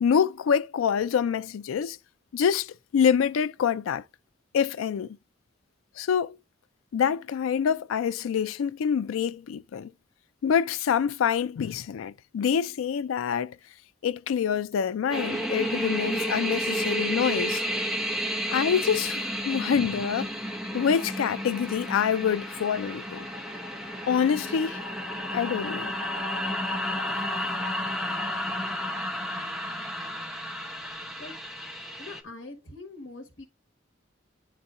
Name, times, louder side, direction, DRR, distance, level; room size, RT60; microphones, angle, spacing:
voice 1, 0.0-2.0 2.3-4.0 4.5-5.2 6.0-6.4 6.9-9.9 10.4-13.6 14.0-17.6 18.5-20.3 20.7-23.3 24.1-24.8 25.3-25.9, left 7 dB, 90° left, 0.3 m, -26 dB
sound 1, 15.1-32.2, equal, ahead, 0.7 m, -31 dB
voice 2, 32.0-33.5, left 2 dB, 60° left, 1.3 m, -43 dB
10.5 x 4.1 x 2.5 m
head